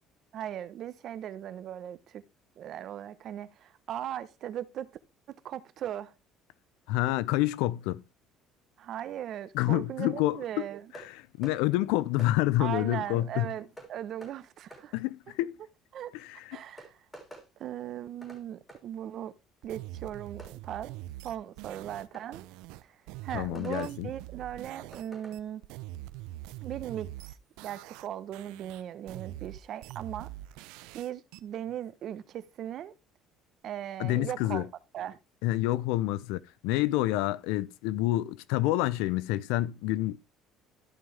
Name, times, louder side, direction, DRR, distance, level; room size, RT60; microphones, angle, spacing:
voice 1, 0.3-2.2 2.6-4.9 5.3-6.1 8.8-10.9 12.6-14.9 15.9-16.1 16.5-17.0 17.6-19.3 19.6-21.0 21.2-22.5 22.8-22.9 23.2-25.6 26.6-27.3 27.6-30.3 30.9-32.9 33.6-34.7 34.9-35.2, right 11 dB, 50° right, 0.8 m, -38 dB
voice 2, 6.9-8.0 9.5-10.4 10.9-13.5 14.9-15.6 16.1-16.6 23.3-24.1 34.0-34.7 35.4-40.2, left 16 dB, 90° left, 0.6 m, -28 dB
sound 1, 10.9-11.1 11.4-11.6 12.2-12.3 13.8-13.9 14.2-14.3 14.7-14.8 16.2-16.3 16.8-17.5 18.2-18.4 18.7-18.8 20.4-20.5 22.1-22.3 23.5-23.9 24.9-25.4, right 1 dB, 10° left, 3.6 m, -47 dB
sound 2, 19.6-25.1 25.3-28.1 28.3-31.4, right 15 dB, 85° right, 0.5 m, -44 dB
13.5 x 5.6 x 3.3 m
cardioid pair, 130°, 0 cm